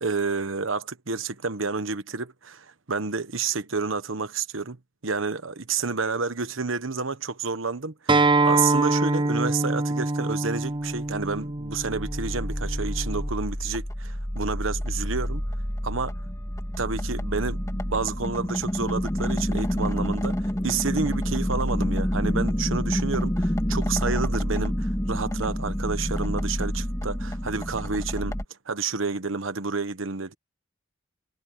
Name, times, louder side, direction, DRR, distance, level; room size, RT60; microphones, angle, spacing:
voice 1, 0.0-4.8 5.0-15.4 15.8-16.2 16.8-28.3 28.7-30.3, right 4 dB, 70° right, 1.3 m, -30 dB
Acoustic guitar, 8.1-13.3, right 2 dB, 25° right, 0.6 m, -25 dB
sound 1, 11.4-28.4, equal, 15° left, 2.0 m, -28 dB
head